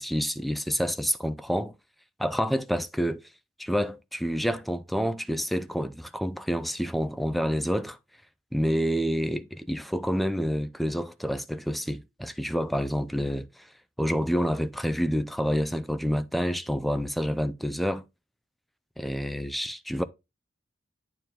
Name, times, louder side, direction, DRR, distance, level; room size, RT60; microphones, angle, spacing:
voice 1, 0.0-1.7 2.2-3.2 3.6-8.0 8.5-13.7 14.0-18.0 19.0-20.0, equal, ahead, 0.5 m, -28 dB
9.1 x 4.6 x 3.6 m
head